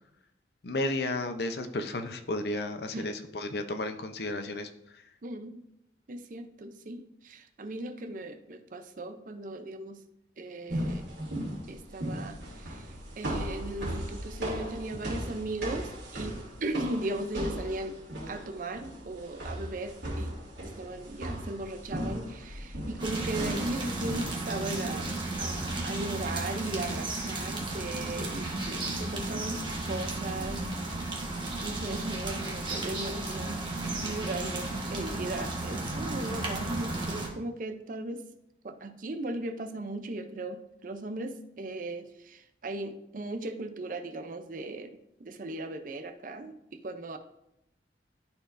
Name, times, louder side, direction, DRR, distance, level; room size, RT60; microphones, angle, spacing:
voice 1, 0.6-5.1, left 2 dB, 60° left, 7 dB, 0.7 m, -33 dB
voice 2, 5.2-5.6 6.1-10.0 10.4-11.1 11.7-18.0 18.3-25.1 25.4-30.7 31.6-38.3 38.6-47.2, right 2 dB, 45° right, 8 dB, 0.6 m, -38 dB
sound 1, 10.7-24.2, equal, 80° right, 2.8 m, -37 dB
sound 2, 23.0-37.3, right 2 dB, 25° right, 1.3 m, -34 dB
13.0 x 4.5 x 2.6 m, 0.83 s
head